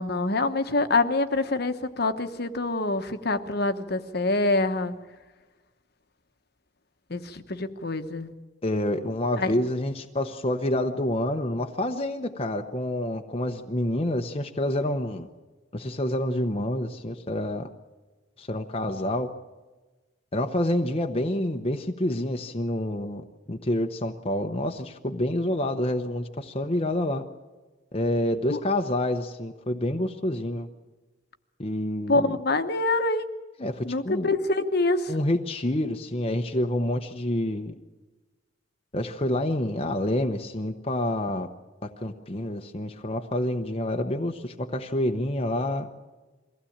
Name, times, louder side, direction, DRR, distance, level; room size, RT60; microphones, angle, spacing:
voice 1, 0.0-4.9 7.1-8.3 9.4-9.5 28.5-28.6 32.1-33.3 33.8-35.1, left 2 dB, 55° left, 9 dB, 1.2 m, -25 dB
voice 2, 8.6-15.3 15.7-17.7 18.4-19.3 20.3-23.2 23.5-27.2 27.9-30.7 31.6-32.4 33.6-34.3 35.1-37.7 38.9-41.5 41.8-45.9, left 1 dB, 30° left, 4 dB, 0.9 m, -28 dB
23.0 x 16.0 x 8.7 m, 1.3 s
head